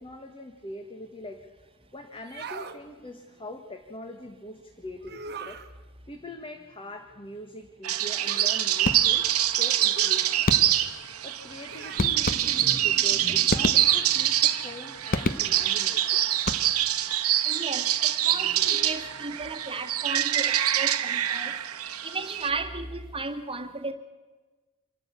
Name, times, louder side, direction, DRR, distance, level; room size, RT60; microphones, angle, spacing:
voice 1, 0.0-1.5 1.9-5.6 6.1-10.5 11.2-16.3, left 1 dB, 25° left, 4 dB, 1.4 m, -42 dB
sound 1, 2.2-2.8 5.0-5.7 8.2-8.6 9.9-10.3 11.7-12.2 13.8-14.1, right 5 dB, 50° right, 1.2 m, -41 dB
sound 2, 7.8-22.5, right 12 dB, 70° right, 1.1 m, -25 dB
sound 3, 8.8-9.4 10.5-11.0 12.0-12.8 13.5-14.3 15.1-15.8 16.3-17.0, left 2 dB, 40° left, 0.9 m, -30 dB
voice 2, 12.1-13.5 13.7-14.0 17.4-21.6 22.0-23.9, right 3 dB, 25° right, 5 dB, 1.7 m, -36 dB
26.0 x 12.0 x 8.4 m, 1.3 s
head